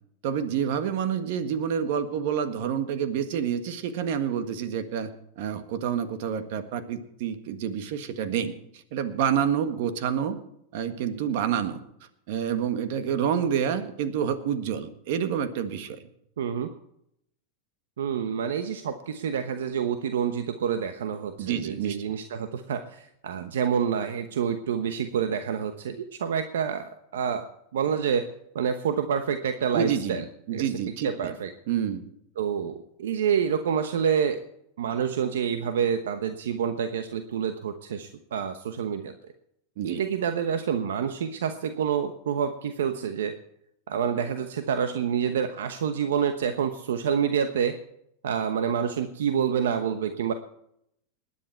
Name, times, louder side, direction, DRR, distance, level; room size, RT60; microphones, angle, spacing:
voice 1, 0.2-5.1 5.4-8.5 8.9-10.4 10.7-11.8 12.3-16.1 21.4-22.1 29.7-30.2 30.5-31.3 31.7-32.0 39.8-40.0, right 8 dB, 65° right, 10 dB, 1.6 m, -28 dB
voice 2, 16.4-16.7 18.0-27.4 27.7-28.3 28.5-30.2 30.5-30.6 31.0-31.5 32.4-34.4 34.8-39.1 39.8-43.3 43.9-47.7 48.2-50.3, right 7 dB, 85° right, 8 dB, 1.0 m, -27 dB
19.5 x 10.0 x 4.5 m, 0.75 s
hypercardioid pair, 120°, 0 cm